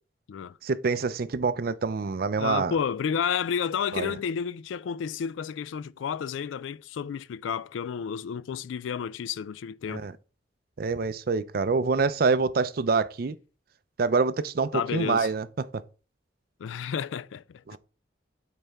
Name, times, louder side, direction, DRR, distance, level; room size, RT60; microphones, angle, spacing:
voice 1, 0.6-2.7 3.9-4.2 9.9-10.1 10.8-13.4 14.0-15.8 17.7-17.8, right 4 dB, 50° right, 0.4 m, -26 dB
voice 2, 2.4-10.0 14.7-15.3 16.6-17.8, left 7 dB, 85° left, 0.3 m, -31 dB
9.0 x 4.1 x 3.4 m
head